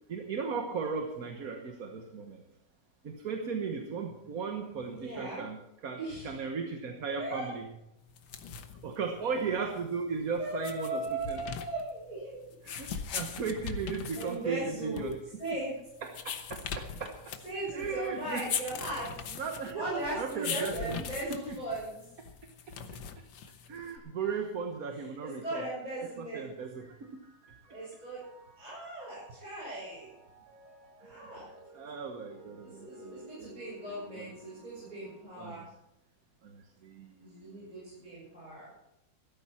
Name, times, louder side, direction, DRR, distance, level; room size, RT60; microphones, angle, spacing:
voice 1, 0.1-2.4 3.0-6.0 6.2-7.7 8.8-11.4 12.6-15.2 16.0-17.3 17.7-18.5 19.3-21.6 23.7-25.7 26.2-27.2 31.0-33.5 34.1-34.3 35.4-35.7 36.4-37.6, right 5 dB, 55° right, 4 dB, 1.6 m, -37 dB
voice 2, 4.9-5.4 5.9-6.3 7.1-7.5 10.4-12.4 14.2-15.1 15.4-15.7 17.4-19.1 19.7-22.0 25.2-26.5 27.7-28.2 28.6-30.1 31.0-31.5 32.6-35.6 37.2-38.7, right 2 dB, 20° right, -9 dB, 6.9 m, -38 dB
sound 1, 8.1-24.0, left 7 dB, 80° left, 1.8 m, -41 dB
sound 2, 26.4-35.2, equal, 75° right, 4.6 m, -55 dB
16.0 x 13.5 x 4.4 m, 0.84 s
omnidirectional pair, 2.0 m